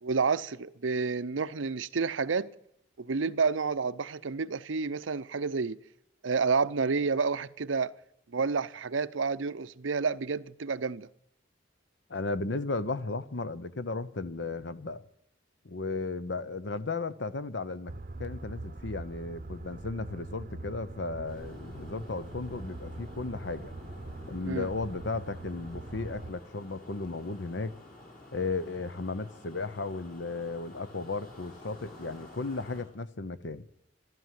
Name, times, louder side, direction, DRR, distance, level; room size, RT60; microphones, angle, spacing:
voice 1, 0.0-2.5 3.0-5.8 6.2-7.9 8.3-11.1 24.5-24.7, right 4 dB, 85° right, 0.6 m, -29 dB
voice 2, 12.1-15.0 15.6-17.9 18.2-23.7 24.3-27.7 28.3-33.7, left 3 dB, 65° left, 0.9 m, -35 dB
sound 1, 17.9-26.3, right 2 dB, 45° right, 0.7 m, -43 dB
sound 2, 21.3-32.8, left 1 dB, 45° left, 4.7 m, -50 dB
14.5 x 12.5 x 7.6 m
head